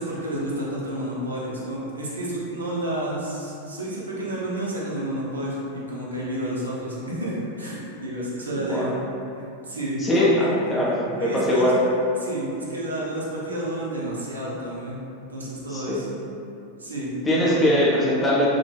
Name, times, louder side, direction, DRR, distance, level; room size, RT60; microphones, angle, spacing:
voice 1, 0.0-8.9 9.3-10.5 11.2-11.7 12.2-15.0 15.3-16.1 16.8-17.7, right 1 dB, 75° right, -6 dB, 0.5 m, -30 dB
voice 2, 8.6-8.9 10.0-11.8 15.7-16.1 17.2-18.5, left 1 dB, 15° left, -6 dB, 0.4 m, -21 dB
2.1 x 2.1 x 3.2 m, 2.7 s
figure-of-eight pair, 90°, 0 cm